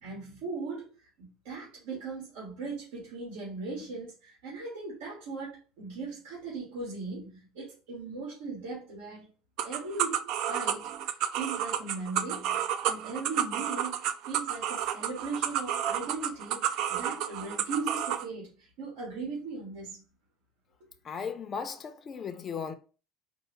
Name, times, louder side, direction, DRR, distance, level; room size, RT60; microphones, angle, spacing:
voice 1, 0.0-0.9 1.2-9.3 9.6-20.0, right 3 dB, 85° right, 1.9 m, -39 dB
sound 1, 9.6-18.2, right 10 dB, 55° right, 0.3 m, -31 dB
voice 2, 21.0-22.7, left 6 dB, 25° left, 0.5 m, -36 dB
4.5 x 2.4 x 3.1 m
cardioid pair, 155°, 0 cm